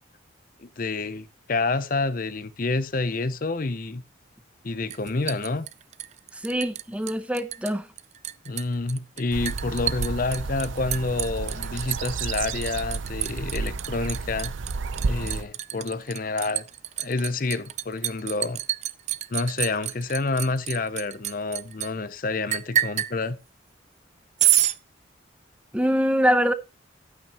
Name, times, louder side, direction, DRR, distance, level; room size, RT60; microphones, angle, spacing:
voice 1, 0.6-4.0 4.6-5.7 8.5-14.5 15.0-16.6 17.0-18.6 19.3-23.4, left 3 dB, 45° left, 0.6 m, -28 dB
Liquid, 4.9-6.8 7.1-7.7 8.0-21.9 22.5-23.1 24.4-24.8, right 12 dB, 35° right, 0.4 m, -28 dB
voice 2, 6.3-7.9 25.7-26.5, equal, 5° right, 0.7 m, -23 dB
sound 1, 9.3-15.4, right 4 dB, 80° right, 0.6 m, -31 dB
11.5 x 8.9 x 2.9 m
head